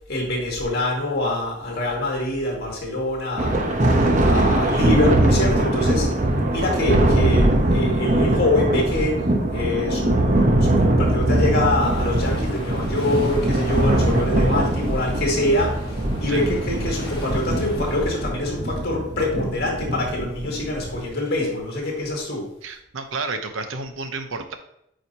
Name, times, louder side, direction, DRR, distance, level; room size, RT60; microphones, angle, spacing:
voice 1, 0.1-6.1 6.5-9.3 9.5-22.5, left 1 dB, 50° left, -1 dB, 2.1 m, -25 dB
Thunder, 3.4-21.1, right 1 dB, 40° right, 0.8 m, -21 dB
sound 1, 11.8-18.2, left 1 dB, 25° left, 1.5 m, -39 dB
voice 2, 22.6-24.5, right 3 dB, 80° right, 7 dB, 0.8 m, -31 dB
8.8 x 4.9 x 2.8 m, 0.77 s
head